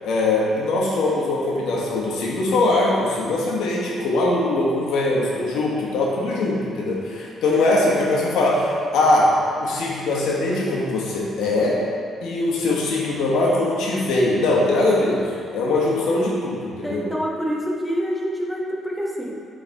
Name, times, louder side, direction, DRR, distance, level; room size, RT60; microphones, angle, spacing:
voice 1, 0.0-9.3 9.6-11.8 12.2-15.2 15.5-17.1, left 2 dB, 80° left, -4 dB, 1.4 m, -21 dB
voice 2, 7.2-7.8 16.8-19.4, equal, 5° right, -3 dB, 1.3 m, -27 dB
8.3 x 3.9 x 4.0 m, 2.3 s
supercardioid pair, 65°, 0 cm